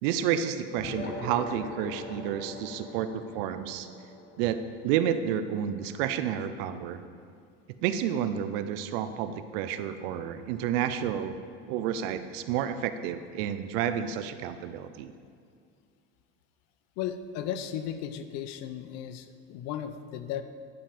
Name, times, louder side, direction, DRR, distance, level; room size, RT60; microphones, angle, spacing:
voice 1, 0.0-3.9 4.4-4.6 4.8-7.0 7.8-11.4 11.7-15.1, right 9 dB, 70° right, 11 dB, 0.7 m, -30 dB
sound 1, 0.8-5.6, left 2 dB, 35° left, 1.3 m, -41 dB
voice 2, 17.0-20.4, left 9 dB, 60° left, 10 dB, 0.7 m, -35 dB
10.5 x 5.5 x 5.2 m, 2.3 s
supercardioid pair, 115°, 30 cm